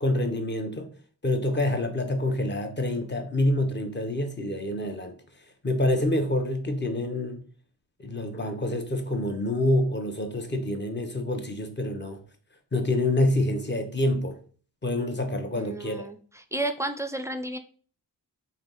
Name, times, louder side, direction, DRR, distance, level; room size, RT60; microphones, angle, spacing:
voice 1, 0.0-0.9 1.2-5.2 5.6-7.4 8.0-12.2 12.7-14.4 14.8-16.0, left 1 dB, 25° left, 0.8 m, -27 dB
voice 2, 15.5-17.6, right 1 dB, 5° right, 0.4 m, -32 dB
3.4 x 2.7 x 3.9 m
cardioid pair, 60°, 42 cm